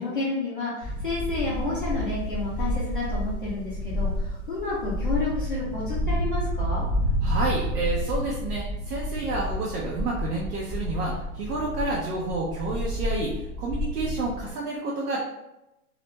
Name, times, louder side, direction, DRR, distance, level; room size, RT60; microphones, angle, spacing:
voice 1, 0.0-6.9, left 3 dB, 35° left, -8 dB, 0.4 m, -30 dB
sound 1, 0.8-14.5, equal, 30° right, 0.5 m, -30 dB
voice 2, 7.2-15.2, right 2 dB, 85° right, -4 dB, 0.8 m, -30 dB
2.4 x 2.1 x 2.9 m, 0.92 s
hypercardioid pair, 170°, 45 cm